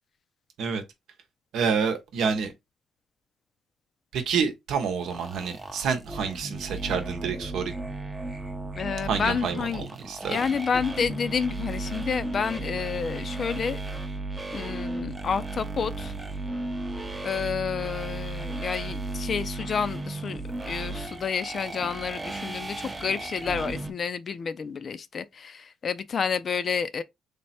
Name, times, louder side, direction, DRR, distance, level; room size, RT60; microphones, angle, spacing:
voice 1, 1.5-2.5 4.1-7.7 9.1-10.4, right 6 dB, 80° right, 0.8 m, -28 dB
sound 1, 5.0-23.9, right 2 dB, 15° right, 0.6 m, -35 dB
voice 2, 8.7-9.9 10.3-13.8 14.5-16.1 17.2-27.0, left 6 dB, 50° left, 0.4 m, -30 dB
3.4 x 2.1 x 4.2 m
cardioid pair, 90°, 0 cm